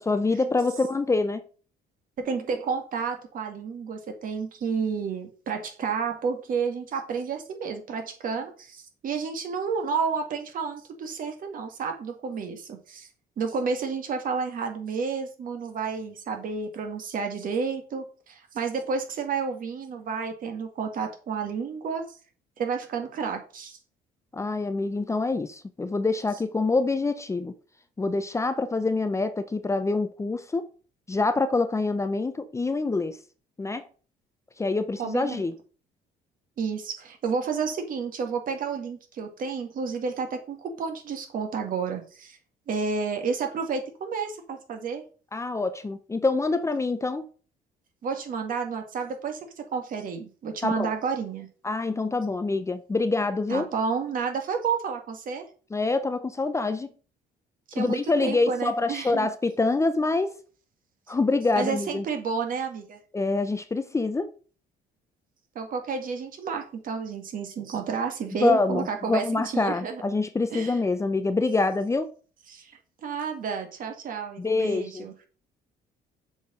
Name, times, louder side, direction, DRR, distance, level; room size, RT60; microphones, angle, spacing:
voice 1, 0.1-1.4 24.3-27.5 28.0-30.7 31.1-33.2 33.6-33.9 34.6-35.5 45.3-47.3 50.6-50.9 51.6-53.7 55.7-56.9 57.7-60.4 61.1-62.0 63.1-64.3 68.4-72.1 74.4-75.1, left 3 dB, 15° left, 0.6 m, -26 dB
voice 2, 2.2-13.1 13.4-22.2 22.6-23.8 35.0-35.4 36.6-42.4 42.7-45.0 48.0-51.5 53.5-55.4 57.7-59.3 61.6-63.0 65.6-70.0 70.5-70.8 72.5-72.7 73.0-75.1, right 5 dB, 55° right, 1.9 m, -31 dB
6.9 x 4.7 x 5.3 m
cardioid pair, 110°, 17 cm